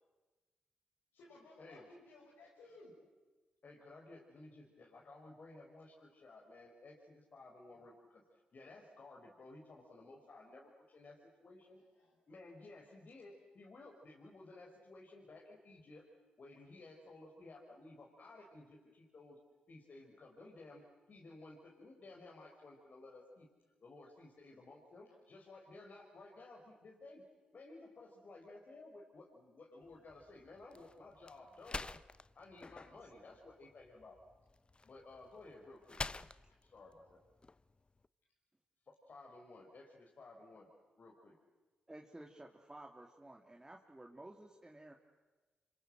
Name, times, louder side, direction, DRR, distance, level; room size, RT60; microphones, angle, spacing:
voice 1, 1.1-3.0 11.7-12.2 36.5-36.6, left 2 dB, 80° left, -5 dB, 6.4 m, -59 dB
voice 2, 3.6-8.2 8.5-11.8 12.3-16.1 16.4-19.4 19.7-23.5 23.8-27.3 27.5-31.9 32.3-34.2 34.8-36.0 36.6-37.2 38.9-40.7 41.0-41.4, left 2 dB, 55° left, -1 dB, 5.2 m, -56 dB
sound 1, 29.8-38.1, left 3 dB, 30° left, 0.9 m, -49 dB
voice 3, 41.9-44.9, right 1 dB, 20° right, 1 dB, 2.9 m, -54 dB
28.0 x 25.0 x 7.8 m, 1.2 s
supercardioid pair, 45°, 3 cm